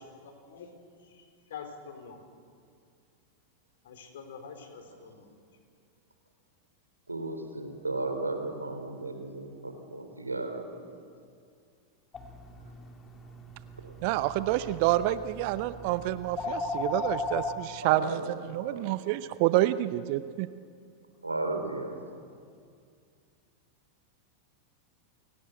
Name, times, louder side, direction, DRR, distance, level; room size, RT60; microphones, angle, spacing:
voice 1, 1.0-2.2 3.8-5.3, left 6 dB, 60° left, 7 dB, 3.9 m, -45 dB
voice 2, 7.1-10.8 13.8-14.1 14.4-14.8 17.8-18.8 21.2-22.0, right 2 dB, 80° right, 6 dB, 3.0 m, -35 dB
sound 1, 12.1-17.5, left 2 dB, 20° left, 2.7 m, -37 dB
voice 3, 14.0-20.5, right 15 dB, 45° right, 14 dB, 0.7 m, -28 dB
29.0 x 17.5 x 8.1 m, 2.3 s
figure-of-eight pair, 90°, 0 cm